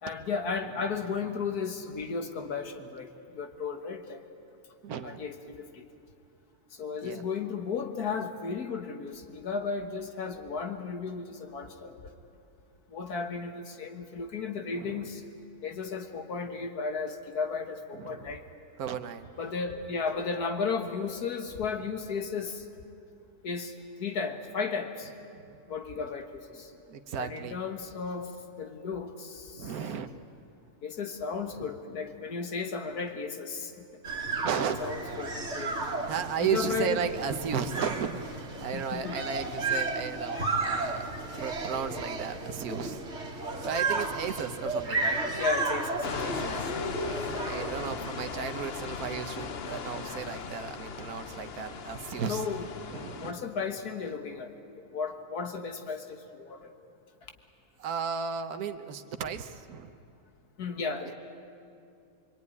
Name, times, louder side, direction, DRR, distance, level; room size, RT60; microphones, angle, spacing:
voice 1, 0.0-4.2 5.0-5.8 6.7-12.0 12.9-15.2 15.6-18.4 19.4-22.7 23.4-25.1 25.7-26.7 27.2-28.3 28.6-29.7 30.8-33.7 34.6-35.8 36.4-37.1 38.7-39.2 45.4-46.3 52.3-56.7 60.6-61.1, left 5 dB, 80° left, 6 dB, 2.0 m, -34 dB
voice 2, 4.8-5.2 7.0-7.2 14.7-15.1 17.9-18.4 18.8-19.3 25.3-25.6 26.0-26.1 26.9-27.6 29.6-30.1 31.6-31.7 34.3-34.8 36.1-43.0 43.6-45.4 46.2-46.7 47.4-52.5 52.9-53.3 57.8-59.9, right 7 dB, 75° right, 8 dB, 1.5 m, -34 dB
sound 1, 34.0-47.9, right 3 dB, 45° right, 2.3 m, -33 dB
sound 2, 46.0-53.3, left 6 dB, 45° left, 1.0 m, -38 dB
24.5 x 24.0 x 9.6 m, 2.6 s
omnidirectional pair, 1.6 m